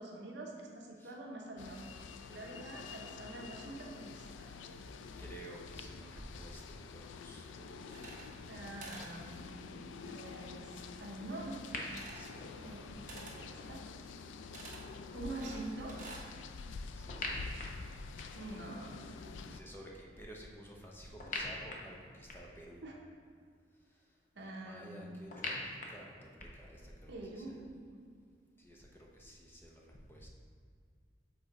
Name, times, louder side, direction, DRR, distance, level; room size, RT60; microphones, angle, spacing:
voice 1, 0.0-1.8 2.3-4.5 8.5-10.7 11.0-11.9 12.6-13.8 15.1-16.0 18.3-19.2 22.8-23.0 24.3-25.1 27.1-28.0, right 2 dB, 70° right, -1 dB, 0.9 m, -46 dB
sound 1, 1.6-19.6, left 4 dB, 85° left, 0.3 m, -48 dB
voice 2, 5.2-8.5 12.1-13.2 14.1-14.3 16.9-17.5 19.2-22.9 23.9-27.6 28.6-30.3, equal, 10° left, -1 dB, 0.7 m, -53 dB
sound 2, 7.9-8.6 8.8-9.1 11.9-12.3 13.1-13.4 14.5-14.8 15.4-16.3, right 3 dB, 45° right, 1.1 m, -49 dB
sound 3, 11.7-11.8 17.1-18.5 21.2-22.6 25.3-26.7, left 2 dB, 45° left, 0.8 m, -42 dB
7.0 x 4.0 x 4.1 m, 2.1 s
head